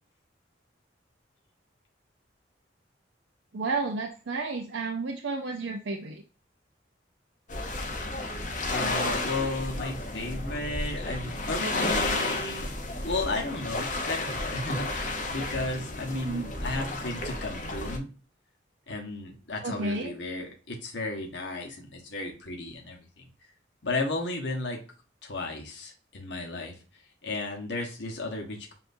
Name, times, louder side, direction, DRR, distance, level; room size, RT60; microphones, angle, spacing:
voice 1, 3.5-6.2 16.1-16.5 19.6-20.1, right 3 dB, 85° right, 2 dB, 0.6 m, -31 dB
sound 1, 7.5-18.0, left 2 dB, 40° left, 0.7 m, -32 dB
voice 2, 8.7-12.7 13.0-18.1 18.9-23.3 23.8-24.8 25.2-28.7, left 2 dB, 70° left, 1 dB, 1.1 m, -34 dB
7.2 x 2.5 x 2.6 m, 0.36 s
head